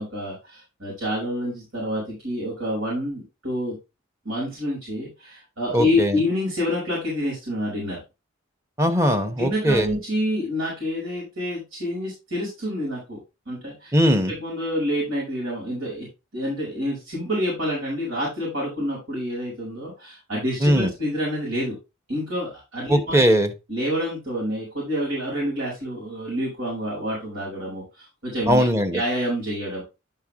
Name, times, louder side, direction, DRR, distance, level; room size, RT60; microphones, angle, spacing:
voice 1, 0.0-3.8 4.2-8.0 9.4-13.2 13.5-13.9 14.3-16.1 16.3-21.8 22.1-23.2 23.7-28.7 28.9-29.8, left 1 dB, 85° right, -5 dB, 5.6 m, -28 dB
voice 2, 5.7-6.2 8.8-10.0 13.9-14.3 20.6-20.9 22.9-23.5 28.5-29.0, equal, 15° right, 7 dB, 1.1 m, -20 dB
11.5 x 4.6 x 3.5 m, 0.26 s
head